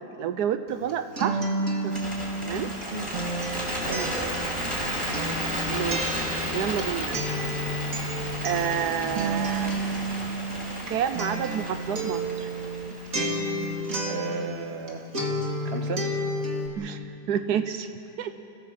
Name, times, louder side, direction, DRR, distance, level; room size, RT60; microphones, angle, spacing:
voice 1, 0.0-1.5 1.8-2.0 2.4-2.7 5.7-7.2 8.4-9.9 10.9-12.5 16.8-17.0 17.3-17.9 18.2-18.3, right 8 dB, 85° right, 10 dB, 1.4 m, -29 dB
Acoustic guitar, 0.7-14.9 15.1-16.7, right 1 dB, 60° right, 2.6 m, -31 dB
Bird, 1.8-14.0, equal, 5° right, 5.2 m, -33 dB
voice 2, 3.8-4.4 14.0-15.1 15.6-16.1, right 4 dB, 40° right, 5 dB, 1.6 m, -34 dB
27.0 x 16.5 x 7.7 m, 2.8 s
omnidirectional pair, 1.7 m